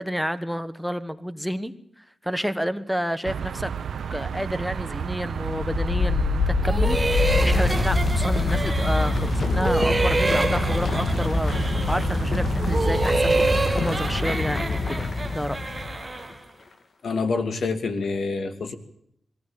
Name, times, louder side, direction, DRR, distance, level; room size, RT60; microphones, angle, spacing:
voice 1, 0.0-3.7 4.1-15.7, equal, ahead, 12 dB, 1.3 m, -30 dB
sound 1, 3.2-14.3, right 7 dB, 85° right, 0.9 m, -31 dB
sound 2, 5.5-16.2, left 4 dB, 60° left, 2.0 m, -25 dB
sound 3, 6.6-9.3 9.6-12.2 12.6-16.4, right 2 dB, 25° right, 1.6 m, -27 dB
voice 2, 17.0-18.7, left 4 dB, 75° left, 8 dB, 2.5 m, -27 dB
22.0 x 16.0 x 8.9 m, 0.71 s
wide cardioid pair, 95°, 0 cm